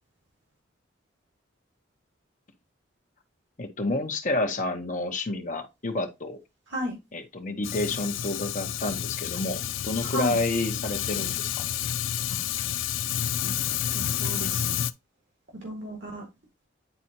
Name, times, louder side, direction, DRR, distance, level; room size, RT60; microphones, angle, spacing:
voice 1, 3.6-6.4 7.1-11.6, left 2 dB, 40° left, 1.0 m, -29 dB
Fire, 7.6-14.9, left 10 dB, 85° left, 0.4 m, -30 dB
voice 2, 10.0-10.4 12.3-12.4 13.4-13.5 13.9-14.8 15.5-16.3, equal, 70° right, 2.1 m, -34 dB
9.1 x 4.2 x 2.9 m
head